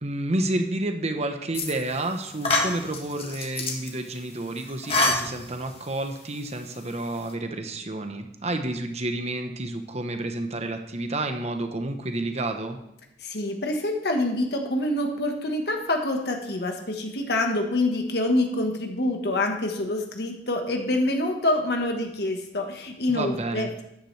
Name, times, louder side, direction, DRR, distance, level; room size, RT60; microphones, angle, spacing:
voice 1, 0.0-12.8 23.1-23.7, right 2 dB, 40° right, 6 dB, 1.1 m, -30 dB
sound 1, 1.5-2.0 2.4-3.9 4.6-5.8, left 2 dB, 35° left, 1.7 m, -26 dB
voice 2, 13.2-23.8, left 1 dB, 65° left, 3 dB, 1.5 m, -26 dB
13.0 x 9.9 x 3.4 m, 0.81 s
head